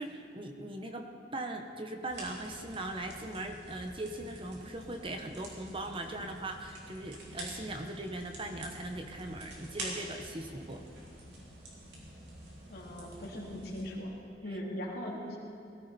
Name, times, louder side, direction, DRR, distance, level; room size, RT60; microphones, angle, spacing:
voice 1, 0.0-10.8, right 1 dB, 30° right, 5 dB, 1.0 m, -40 dB
sound 1, 2.1-13.9, right 1 dB, 75° right, 3.6 m, -47 dB
voice 2, 12.7-14.1 14.4-15.4, equal, 60° left, -3 dB, 2.9 m, -39 dB
20.0 x 14.5 x 4.2 m, 2.6 s
head